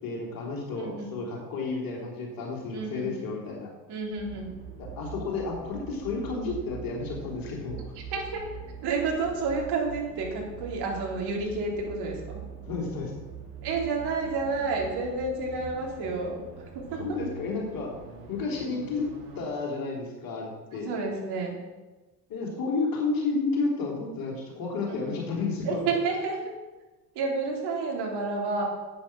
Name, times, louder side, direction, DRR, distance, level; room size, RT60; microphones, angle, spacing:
voice 1, 0.0-3.7 4.8-7.8 12.6-13.1 16.9-17.9 18.3-19.1 19.4-20.9 22.3-25.8, left 3 dB, 45° left, -1 dB, 3.4 m, -31 dB
voice 2, 0.8-1.1 2.7-3.2 3.9-4.5 8.1-8.4 8.8-12.4 13.6-16.4 16.7-17.2 20.8-21.6 24.9-25.2 25.6-26.5 27.2-28.6, right 4 dB, 55° right, -1 dB, 3.6 m, -30 dB
sound 1, 4.2-19.5, right 6 dB, 70° right, 2.2 m, -43 dB
11.5 x 8.8 x 6.2 m, 1.2 s
figure-of-eight pair, 65°, 48 cm